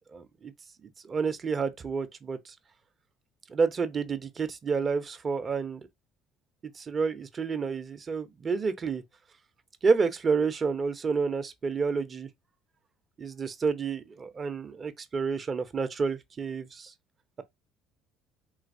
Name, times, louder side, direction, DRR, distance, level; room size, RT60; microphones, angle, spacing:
voice 1, 0.1-0.5 0.8-2.5 3.5-5.8 6.7-9.0 9.8-12.3 13.2-16.9, right 5 dB, 40° right, 0.6 m, -29 dB
3.1 x 2.8 x 2.6 m
hypercardioid pair, 60°, 0 cm